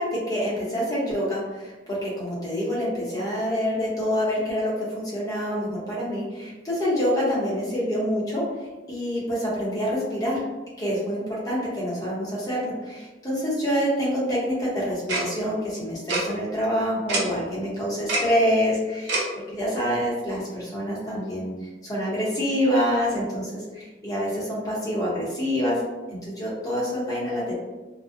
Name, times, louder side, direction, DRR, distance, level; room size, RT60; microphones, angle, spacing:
voice 1, 0.0-8.4 8.9-10.4 10.8-19.2 19.5-25.8 26.2-27.5, equal, 20° left, -7 dB, 0.7 m, -26 dB
Tick-tock, 15.1-15.2 16.1-16.2 17.1-17.2 18.1-18.2 19.1-19.2, right 2 dB, 80° right, 0.6 m, -24 dB
2.5 x 2.0 x 2.4 m, 1.2 s
head